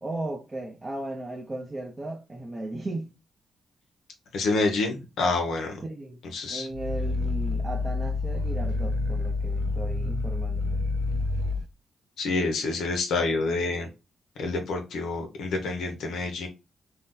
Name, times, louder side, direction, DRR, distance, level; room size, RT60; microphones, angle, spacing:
voice 1, 0.0-3.1 5.8-6.2 6.5-10.8, right 2 dB, 25° right, 0.5 m, -36 dB
voice 2, 4.3-5.8 6.3-6.7 12.2-13.9 14.4-16.5, left 3 dB, 80° left, 0.6 m, -27 dB
Growling, 6.7-11.7, left 3 dB, 75° right, 0.4 m, -28 dB
2.7 x 2.1 x 3.5 m
cardioid pair, 85°, 0 cm